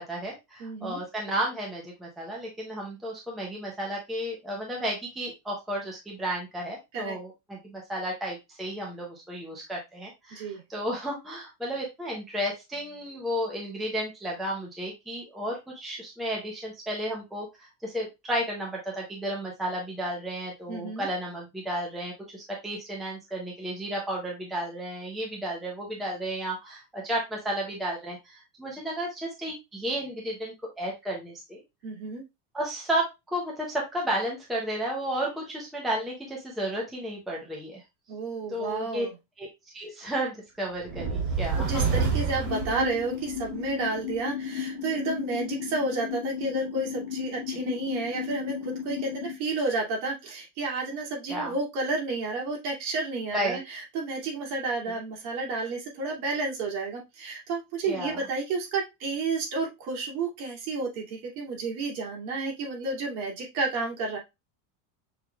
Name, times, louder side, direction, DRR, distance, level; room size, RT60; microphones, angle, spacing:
voice 1, 0.0-31.6 32.5-37.8 38.5-39.1 39.4-39.5 39.7-42.1 47.5-47.6 51.3-51.5 53.3-53.6 57.8-58.3, right 1 dB, ahead, -2 dB, 0.6 m, -33 dB
voice 2, 0.6-1.0 6.9-7.2 10.3-10.6 20.7-21.1 31.8-32.2 38.1-39.1 41.5-64.2, right 3 dB, 60° right, -2 dB, 2.7 m, -31 dB
sound 1, 40.8-43.5, right 5 dB, 35° right, 2.1 m, -28 dB
sound 2, 42.5-49.3, left 9 dB, 55° left, 1.2 m, -34 dB
6.4 x 3.4 x 2.3 m, 0.22 s
cardioid pair, 165°, 49 cm